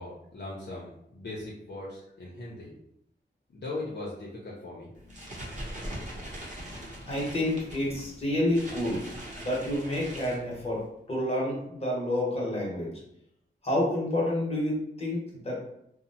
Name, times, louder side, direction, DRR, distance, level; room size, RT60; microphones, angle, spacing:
voice 1, 0.0-2.7 3.5-4.9, left 2 dB, 60° left, -6 dB, 0.6 m, -39 dB
sound 1, 4.9-10.9, equal, 40° right, 0.8 m, -41 dB
voice 2, 7.1-9.1 9.4-10.8 11.1-12.9 13.6-15.6, left 1 dB, 30° left, -4 dB, 1.0 m, -29 dB
2.7 x 2.1 x 2.7 m, 0.78 s
wide cardioid pair, 80°, 20 cm